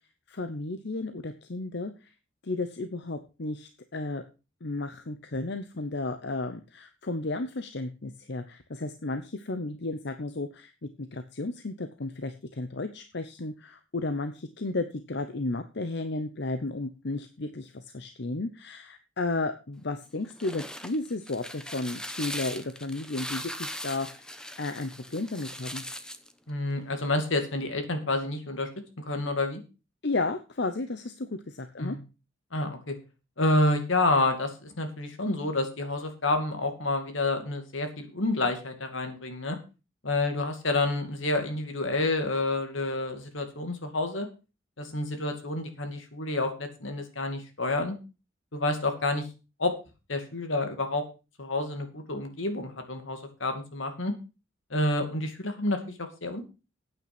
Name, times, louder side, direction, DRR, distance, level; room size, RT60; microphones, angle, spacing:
voice 1, 0.3-2.1 2.4-4.2 4.6-25.8 30.0-32.0, left 2 dB, 60° left, 9 dB, 0.9 m, -33 dB
sound 1, 20.2-26.3, left 1 dB, 5° left, 1.0 m, -39 dB
voice 2, 26.5-28.7 29.0-29.6 31.8-32.0 32.5-33.0 33.4-39.6 40.0-44.3 44.8-48.0 48.5-49.3 49.6-49.7 50.1-51.0 51.4-54.1 54.7-56.4, left 2 dB, 75° left, 6 dB, 2.5 m, -29 dB
9.0 x 8.9 x 6.1 m, 0.31 s
head